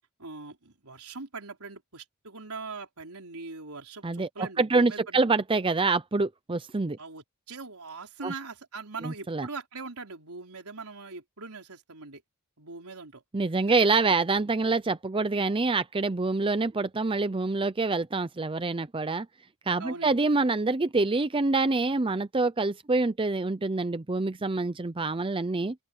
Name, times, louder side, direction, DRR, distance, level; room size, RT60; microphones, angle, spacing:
voice 1, 0.2-5.3 7.0-12.2 12.6-13.2 13.7-14.1 19.8-20.2, right 4 dB, 80° right, 4.1 m, -41 dB
voice 2, 4.0-7.0 8.2-8.3 9.0-9.5 13.3-19.3 19.7-25.7, right 3 dB, 25° right, 0.6 m, -26 dB
open air
head